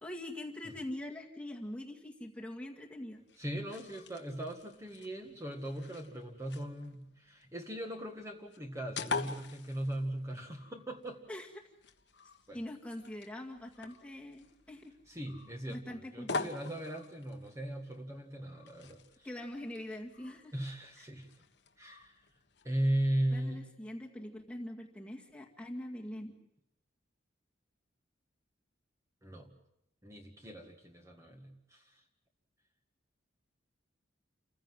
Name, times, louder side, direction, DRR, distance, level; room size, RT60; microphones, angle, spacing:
voice 1, 0.0-3.2 11.3-11.5 12.5-14.9 15.7-16.5 19.2-20.5 21.0-21.1 23.3-26.3, left 1 dB, 5° left, 0 dB, 2.0 m, -43 dB
sound 1, 3.1-22.9, left 4 dB, 60° left, 1.4 m, -46 dB
voice 2, 3.4-11.2 12.5-12.6 15.1-19.0 20.5-21.3 21.8-22.1 22.6-23.6 29.2-29.5 30.0-31.8, right 1 dB, 15° right, 3 dB, 1.9 m, -38 dB
29.0 x 15.5 x 7.7 m, 0.82 s
head